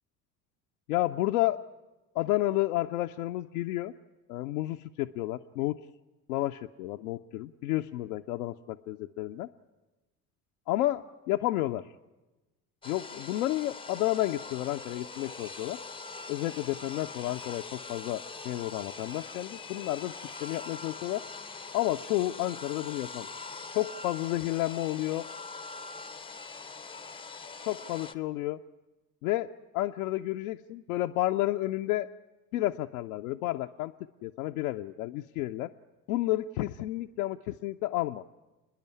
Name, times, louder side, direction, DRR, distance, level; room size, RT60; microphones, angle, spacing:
voice 1, 0.9-1.6 2.1-3.9 4.3-5.8 6.3-9.5 10.7-11.8 12.9-15.8 16.3-21.2 21.7-23.3 23.7-25.3 27.6-28.6 29.2-32.1 32.5-33.9 34.2-35.7 36.1-38.2, left 16 dB, 60° left, 4 dB, 0.6 m, -31 dB
sound 1, 12.8-28.2, left 4 dB, 10° left, 0.6 m, -43 dB
28.5 x 10.5 x 9.7 m, 1.1 s
figure-of-eight pair, 60°, 49 cm